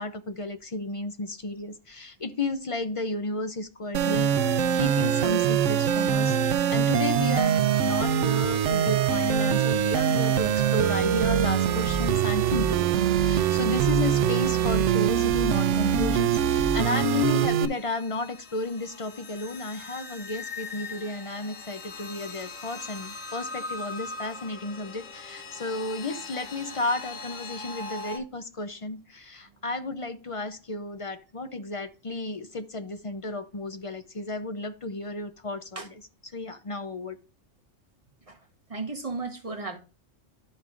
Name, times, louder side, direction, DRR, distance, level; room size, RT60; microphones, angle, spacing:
voice 1, 0.0-6.4 6.7-35.7 36.3-37.2, left 2 dB, 45° left, 0.4 m, -32 dB
sound 1, 3.9-17.7, right 9 dB, 75° right, 0.9 m, -23 dB
sound 2, 16.1-28.2, left 3 dB, 90° left, 1.8 m, -41 dB
voice 2, 38.7-39.8, right 3 dB, 30° right, 1.1 m, -34 dB
12.0 x 5.3 x 2.4 m
omnidirectional pair, 1.3 m